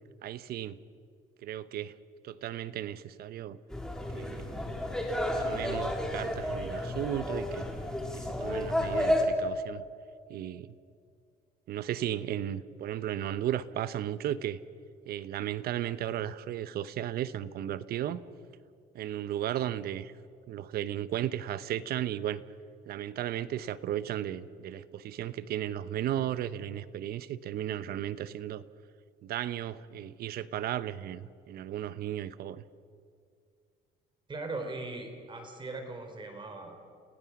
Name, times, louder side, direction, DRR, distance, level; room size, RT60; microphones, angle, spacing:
voice 1, 0.2-0.8 1.4-1.9 2.2-3.6 4.1-4.5 5.4-7.7 8.1-9.8 10.3-10.7 11.7-14.6 15.1-18.2 18.9-20.1 20.5-22.4 22.9-28.6 29.2-32.6, right 11 dB, 65° right, 15 dB, 0.9 m, -35 dB
sound 1, 3.7-9.2, left 1 dB, 5° left, 3.4 m, -31 dB
voice 2, 34.3-36.8, right 2 dB, 30° right, 5 dB, 3.9 m, -39 dB
29.5 x 16.5 x 6.0 m, 2.2 s
cardioid pair, 110°, 17 cm